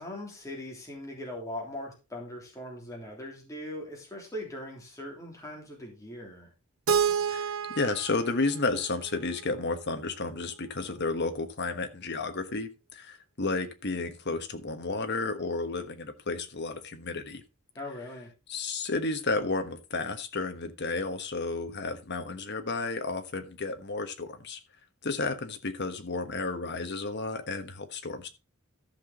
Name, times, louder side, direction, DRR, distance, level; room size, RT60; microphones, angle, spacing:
voice 1, 0.0-6.5 17.8-18.3, left 1 dB, 15° left, 3.2 m, -40 dB
Keyboard (musical), 6.9-9.8, right 7 dB, 70° right, 0.7 m, -30 dB
voice 2, 7.3-17.4 18.5-24.6 25.0-28.3, left 3 dB, 50° left, 1.3 m, -32 dB
13.5 x 6.0 x 3.9 m
head